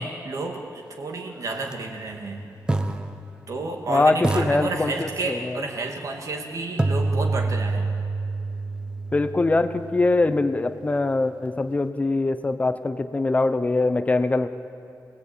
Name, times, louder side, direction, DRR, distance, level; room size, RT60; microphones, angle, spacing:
voice 1, 0.0-2.4 3.5-8.0, right 3 dB, 55° right, 3 dB, 2.5 m, -31 dB
Glass Bass, 1.6-1.7 2.7-3.8 4.2-5.5 6.8-10.7, right 2 dB, 15° right, 1.0 m, -28 dB
voice 2, 3.9-5.6 9.1-14.5, left 2 dB, 20° left, 11 dB, 0.9 m, -23 dB
27.0 x 18.5 x 9.0 m, 2.7 s
wide cardioid pair, 175°, 7 cm